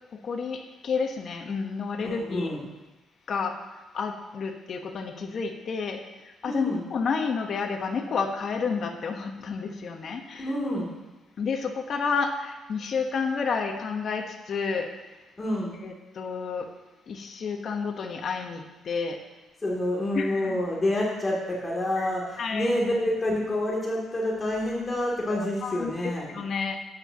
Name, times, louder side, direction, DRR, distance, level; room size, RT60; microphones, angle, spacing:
voice 1, 0.1-2.5 3.3-3.6 3.9-6.0 6.4-10.5 11.4-14.9 15.8-16.7 17.1-19.2 20.1-20.6 22.0-22.7 25.3-26.8, left 5 dB, 55° left, 4 dB, 1.2 m, -30 dB
voice 2, 2.0-2.6 6.4-6.8 10.4-10.9 15.4-15.7 19.6-26.3, left 1 dB, 25° left, -3 dB, 2.8 m, -28 dB
13.0 x 9.4 x 2.9 m, 1.1 s
cardioid pair, 90°, 0 cm